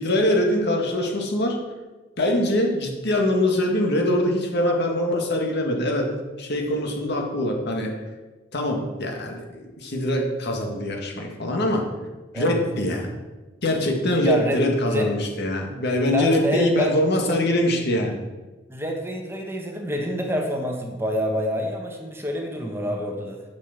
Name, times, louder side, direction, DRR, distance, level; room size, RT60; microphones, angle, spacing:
voice 1, 0.0-1.6 2.2-6.1 6.4-7.9 8.5-11.9 12.3-13.1 13.6-18.2, left 1 dB, 60° left, 1 dB, 2.1 m, -23 dB
voice 2, 14.2-15.1 16.1-17.0 18.7-23.4, equal, 15° right, 2 dB, 1.4 m, -27 dB
9.5 x 6.7 x 7.3 m, 1.2 s
head